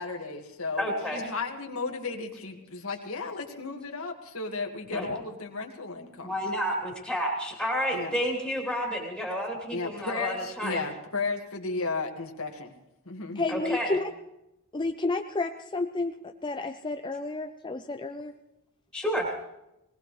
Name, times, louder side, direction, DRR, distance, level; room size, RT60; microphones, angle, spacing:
voice 1, 0.0-6.3 7.9-8.2 9.7-12.7 13.1-13.4, left 3 dB, 70° left, 2 dB, 1.9 m, -34 dB
voice 2, 0.8-1.3 4.9-5.1 6.2-10.8 13.5-13.9 18.9-19.3, equal, 5° right, -2 dB, 3.0 m, -30 dB
voice 3, 13.4-14.0 14.7-18.3, left 3 dB, 20° left, 5 dB, 0.5 m, -31 dB
23.5 x 18.5 x 3.2 m, 0.90 s
head